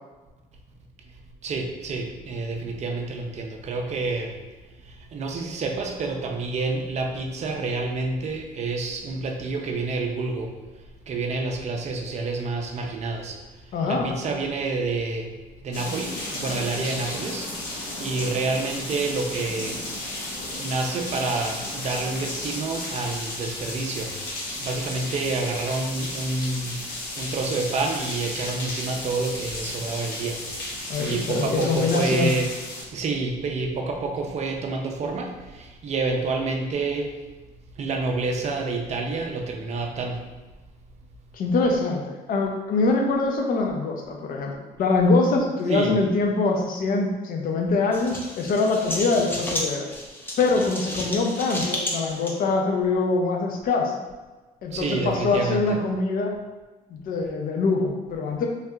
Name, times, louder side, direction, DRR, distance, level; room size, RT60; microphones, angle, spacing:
voice 1, 1.4-4.3 4.8-10.5 11.1-13.4 13.8-15.4 15.6-17.5 18.0-19.8 20.6-24.2 24.6-26.8 27.2-30.4 30.7-32.5 32.9-37.1 37.8-40.2 45.7-46.0 54.7-55.8, right 3 dB, 40° right, 2 dB, 0.5 m, -28 dB
voice 2, 13.7-14.1 30.9-32.3 41.3-44.5 44.8-49.8 50.4-54.0 54.6-56.3 56.9-58.5, left 3 dB, 55° left, 2 dB, 0.6 m, -24 dB
sound 1, 15.7-32.8, left 1 dB, 80° left, 0.9 m, -34 dB
sound 2, 47.9-52.3, left 1 dB, 10° left, 0.5 m, -32 dB
3.2 x 2.7 x 2.3 m, 1.2 s
cardioid pair, 110°, 17 cm